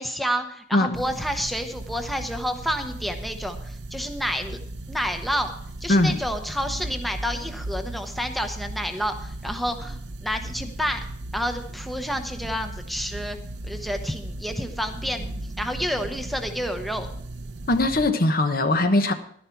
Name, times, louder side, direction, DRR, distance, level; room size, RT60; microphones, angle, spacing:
voice 1, 0.0-4.6 4.9-5.5 5.8-11.0 11.3-13.4 13.6-17.1, equal, ahead, 5 dB, 0.8 m, -29 dB
sound 1, 0.9-18.1, right 1 dB, 65° right, 0.7 m, -36 dB
voice 2, 5.9-6.2 17.7-19.1, left 2 dB, 55° left, 8 dB, 1.0 m, -21 dB
11.5 x 11.0 x 4.5 m, 0.63 s
head